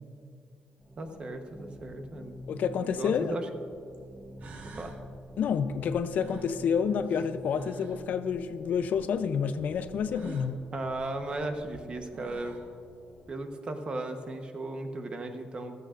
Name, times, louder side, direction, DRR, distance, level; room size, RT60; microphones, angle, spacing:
sound 1, 0.8-13.4, equal, 5° right, 1.4 m, -48 dB
voice 1, 1.0-2.3 2.8-3.5 4.8-4.9 10.7-12.5 13.3-15.7, right 2 dB, 35° right, 5 dB, 1.0 m, -36 dB
voice 2, 2.5-3.4 5.4-10.6, left 7 dB, 65° left, 10 dB, 0.5 m, -29 dB
sound 2, 3.9-4.0 4.4-5.0 6.1-8.1 10.1-10.5 11.7-11.8 12.1-12.7, right 3 dB, 60° right, 1.4 m, -48 dB
15.0 x 14.0 x 2.5 m, 2.4 s
cardioid pair, 150°, 3 cm